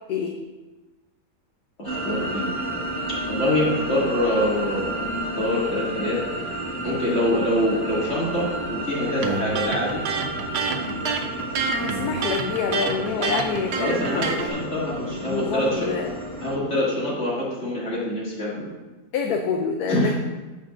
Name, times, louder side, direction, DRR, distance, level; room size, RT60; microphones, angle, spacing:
voice 1, 1.8-2.5 3.1-6.2 6.8-10.1 13.8-15.9 16.4-18.7 19.9-20.1, left 1 dB, 45° left, -7 dB, 2.8 m, -25 dB
sound 1, 1.8-16.5, right 1 dB, 35° right, 2.4 m, -31 dB
Electric guitar, 9.2-14.5, right 4 dB, 90° right, 1.4 m, -27 dB
voice 2, 11.8-14.5 15.3-16.1 19.1-20.1, left 5 dB, 75° left, 3 dB, 1.1 m, -27 dB
14.5 x 5.2 x 2.6 m, 1.2 s
omnidirectional pair, 1.7 m